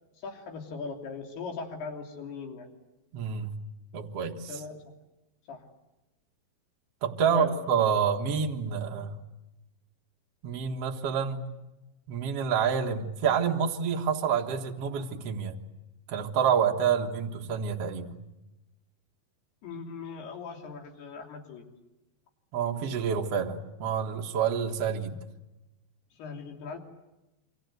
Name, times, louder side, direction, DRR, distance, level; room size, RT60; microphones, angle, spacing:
voice 1, 0.2-2.7 4.5-4.8 5.5-5.6 7.3-7.5 19.6-21.7 26.2-26.8, left 4 dB, 65° left, 3 dB, 5.0 m, -38 dB
voice 2, 3.1-3.5 3.9-4.6 7.0-9.2 10.4-11.5 12.1-15.6 16.1-18.2 22.5-25.2, right 7 dB, 55° right, 1 dB, 1.8 m, -28 dB
28.0 x 25.5 x 8.1 m, 0.99 s
omnidirectional pair, 4.9 m